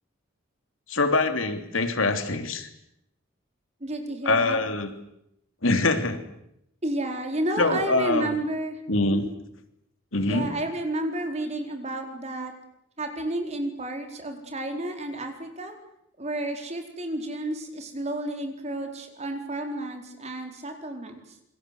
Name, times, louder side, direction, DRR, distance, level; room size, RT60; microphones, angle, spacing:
voice 1, 0.9-2.7 4.2-4.9 5.6-6.2 7.6-8.4 8.9-9.2 10.1-10.5, left 2 dB, 80° left, 8 dB, 3.2 m, -24 dB
voice 2, 3.8-4.6 6.8-8.8 9.1-9.3 10.3-12.5 13.0-15.7 16.2-21.1, right 1 dB, 35° right, 5 dB, 4.5 m, -31 dB
28.0 x 23.0 x 7.9 m, 0.77 s
head